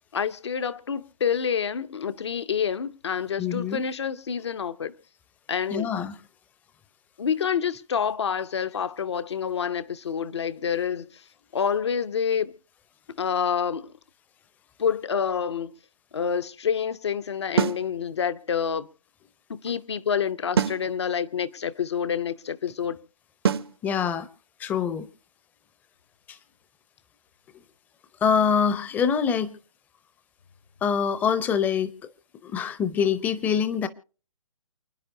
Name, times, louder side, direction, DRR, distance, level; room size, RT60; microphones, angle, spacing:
voice 1, 0.1-4.9 5.5-5.9 7.2-11.2 11.5-12.5 13.2-13.9 14.8-15.7 16.1-18.9 19.5-23.0, left 7 dB, 55° left, 0.7 m, -28 dB
voice 2, 3.4-3.8 5.7-6.1 23.8-24.3 24.6-25.1 26.3-26.4 28.2-29.6 30.8-31.9 32.4-33.9, left 7 dB, 10° left, 0.6 m, -24 dB
sound 1, 17.6-17.9 20.6-20.9 23.4-23.7, right 7 dB, 50° right, 0.7 m, -23 dB
29.0 x 9.9 x 2.7 m
figure-of-eight pair, 130°, 17 cm